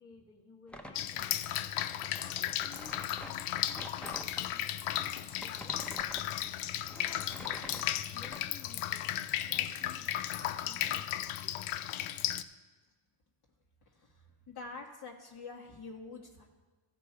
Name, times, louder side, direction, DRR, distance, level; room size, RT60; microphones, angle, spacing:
voice 1, 0.0-1.6 2.1-4.8 5.3-6.5 6.9-9.1 9.4-11.6, left 4 dB, 30° left, -4 dB, 1.6 m, -56 dB
sound 1, 0.7-4.4 4.9-8.4, equal, ahead, 0.8 m, -47 dB
Drip, 1.0-12.4, left 12 dB, 85° left, 0.6 m, -35 dB
voice 2, 13.9-16.6, left 4 dB, 50° left, -2 dB, 1.5 m, -47 dB
14.5 x 5.2 x 4.5 m, 1.4 s
cardioid pair, 90°, 49 cm